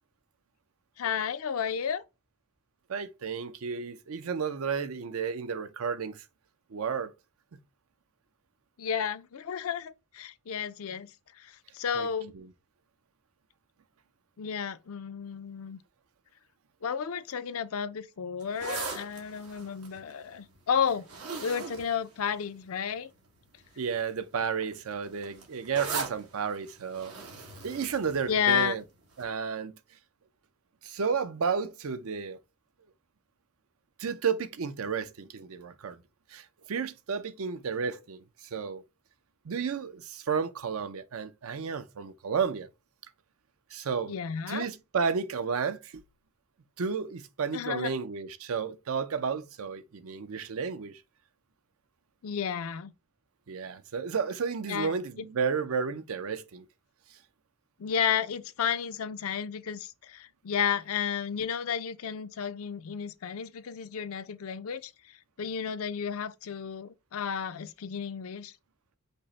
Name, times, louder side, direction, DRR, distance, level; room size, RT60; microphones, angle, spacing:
voice 1, 1.0-2.0 8.8-11.1 11.7-12.3 14.4-15.8 16.8-21.1 21.4-23.1 28.3-28.8 44.1-44.7 47.5-47.9 52.2-52.9 54.7-54.9 57.8-64.9 65.4-68.5, left 7 dB, 70° left, 0.5 m, -32 dB
voice 2, 2.9-6.2 6.7-7.1 11.9-12.1 12.3-12.5 23.8-27.1 27.6-28.8 29.2-29.7 30.8-32.4 34.0-36.0 36.3-38.2 38.5-38.8 39.5-42.7 43.7-44.2 44.5-45.9 46.8-51.0 53.5-56.6, right 6 dB, 70° right, 0.5 m, -32 dB
sound 1, 18.4-22.9 23.6-23.9 24.2-28.8 29.2-29.3, right 4 dB, 90° right, 1.6 m, -40 dB
5.3 x 2.1 x 4.0 m
head